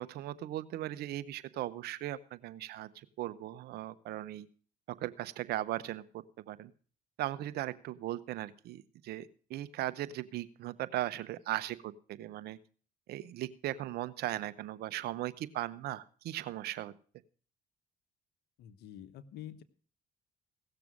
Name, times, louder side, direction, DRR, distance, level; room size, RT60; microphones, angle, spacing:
voice 1, 0.0-4.5 4.9-6.7 7.2-12.6 13.1-16.9, right 14 dB, 75° right, 15 dB, 0.8 m, -38 dB
voice 2, 18.6-19.6, left 11 dB, 75° left, 11 dB, 1.1 m, -47 dB
17.0 x 6.9 x 6.2 m, 0.42 s
supercardioid pair, 70°, 17 cm